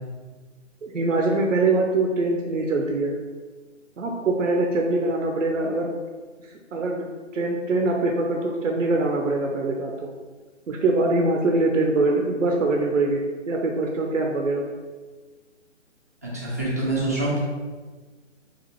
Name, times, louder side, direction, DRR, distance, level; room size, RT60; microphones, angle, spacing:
voice 1, 0.8-3.2 4.0-5.9 6.7-7.1 7.3-9.9 10.7-13.2 13.5-14.7, right 2 dB, 85° right, 1 dB, 0.6 m, -23 dB
voice 2, 16.2-17.4, right 2 dB, 15° right, -7 dB, 0.4 m, -25 dB
5.2 x 2.5 x 2.9 m, 1.4 s
figure-of-eight pair, 145°, 37 cm